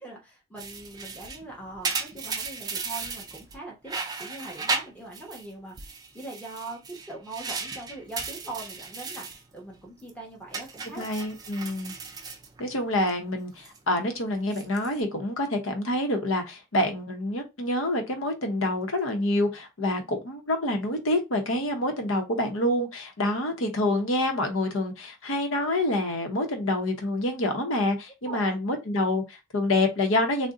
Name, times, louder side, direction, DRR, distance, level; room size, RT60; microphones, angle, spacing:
voice 1, 0.0-11.1 19.8-19.9 28.2-28.6, right 2 dB, 5° left, 0.9 m, -41 dB
sound 1, 0.6-3.6 3.9-5.5 5.8-9.4 9.8-10.1 10.5-13.1 13.4-13.8 14.4-15.0, right 4 dB, 20° right, 0.3 m, -35 dB
voice 2, 11.0-11.9 12.6-30.5, left 1 dB, 80° left, 0.8 m, -27 dB
2.5 x 2.1 x 3.6 m
head